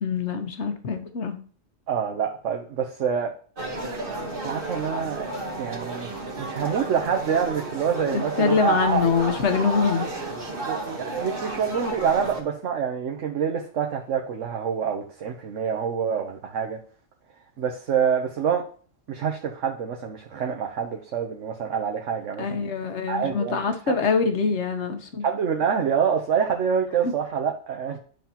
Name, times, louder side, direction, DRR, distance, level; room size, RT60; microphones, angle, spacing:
voice 1, 0.0-1.4 8.1-10.1 22.4-25.2 27.0-27.1, left 5 dB, 60° left, 6 dB, 1.3 m, -24 dB
voice 2, 1.9-3.3 4.4-5.3 5.6-9.1 10.6-16.8 17.6-18.6 19.1-22.4 23.1-24.0 25.2-28.0, right 7 dB, 65° right, 2 dB, 1.2 m, -26 dB
sound 1, 3.6-12.4, right 2 dB, 45° right, 1.6 m, -32 dB
10.5 x 5.7 x 2.9 m, 0.43 s
omnidirectional pair, 1.4 m